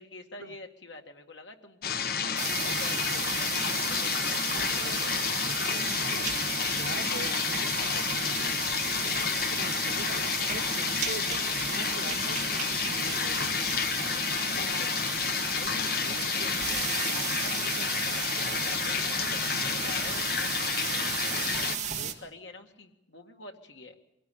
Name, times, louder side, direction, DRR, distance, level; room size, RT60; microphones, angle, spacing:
voice 1, 0.0-1.8 2.6-5.2 14.0-14.3 14.5-14.9 15.4-16.9 17.4-18.3 18.5-20.3 20.9-24.0, left 2 dB, 85° left, 4 dB, 2.0 m, -47 dB
sound 1, 1.8-21.8, left 7 dB, 55° left, 0.8 m, -30 dB
sound 2, 2.4-22.1, right 8 dB, 40° right, 1.8 m, -34 dB
voice 2, 2.4-3.2 4.5-8.6 9.0-10.2 10.5-13.7 18.4-18.7 19.4-19.7 22.0-22.2, right 2 dB, 90° right, 7 dB, 1.2 m, -44 dB
23.5 x 16.5 x 8.7 m, 0.92 s
head